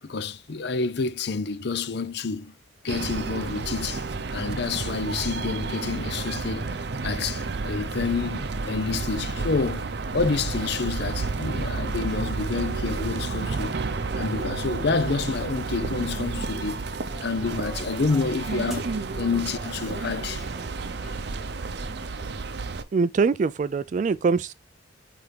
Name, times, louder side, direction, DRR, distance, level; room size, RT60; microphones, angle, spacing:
voice 1, 0.0-2.5 2.8-6.7 7.0-9.9 10.1-13.8 14.1-16.9 17.2-18.9 19.2-20.4, left 4 dB, 60° left, 0.6 m, -28 dB
sound 1, 2.9-22.8, right 3 dB, 60° right, 0.7 m, -31 dB
sound 2, 16.0-21.2, equal, ahead, 1.5 m, -47 dB
voice 2, 22.9-24.5, right 4 dB, 40° right, 0.3 m, -23 dB
8.8 x 3.5 x 3.3 m
head